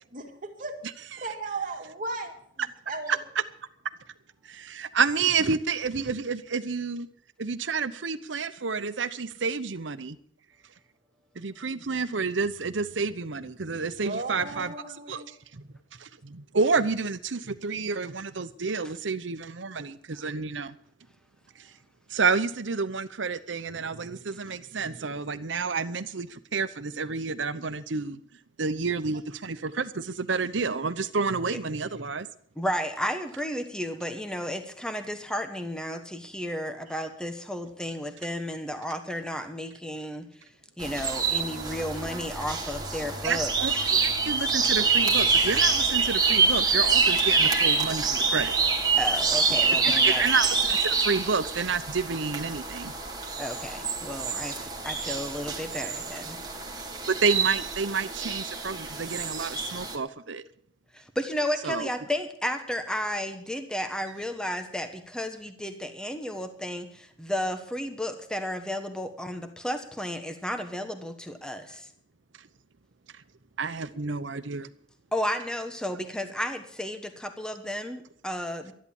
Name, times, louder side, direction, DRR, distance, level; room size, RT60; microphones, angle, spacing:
voice 1, 0.1-0.7 1.2-2.3 2.9-3.2 14.0-15.3, right 3 dB, 45° right, 2 dB, 2.4 m, -35 dB
voice 2, 4.4-7.1 7.4-10.2 11.3-14.7 15.1-15.6 16.0-20.8 21.6-21.7 22.1-28.2 28.6-32.3 43.2-48.6 49.8-52.9 57.1-60.4 61.6-61.9 73.6-74.7, right 4 dB, 80° right, 12 dB, 0.9 m, -29 dB
voice 3, 32.6-40.3 40.8-43.5 49.0-50.2 53.4-56.4 60.9-71.9 75.1-78.7, equal, 5° left, 6 dB, 1.2 m, -33 dB
sound 1, 40.8-60.0, right 4 dB, 20° right, 2.1 m, -26 dB
12.5 x 11.0 x 7.1 m, 0.63 s
head